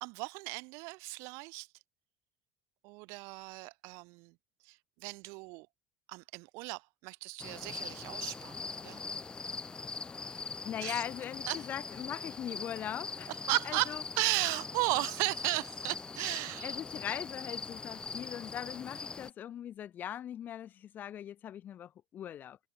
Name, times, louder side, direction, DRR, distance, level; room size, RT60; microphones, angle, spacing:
voice 1, 0.0-1.7 2.8-4.3 4.6-5.7 6.1-9.0 10.8-11.0 11.5-11.7 13.3-16.8, right 28 dB, 70° right, 1.7 m, -35 dB
sound 1, 7.4-19.3, left 4 dB, 15° left, 3.7 m, -42 dB
voice 2, 10.3-13.3 13.7-14.0 16.6-22.6, left 10 dB, 35° left, 4.8 m, -40 dB
cardioid pair, 135°, 5 cm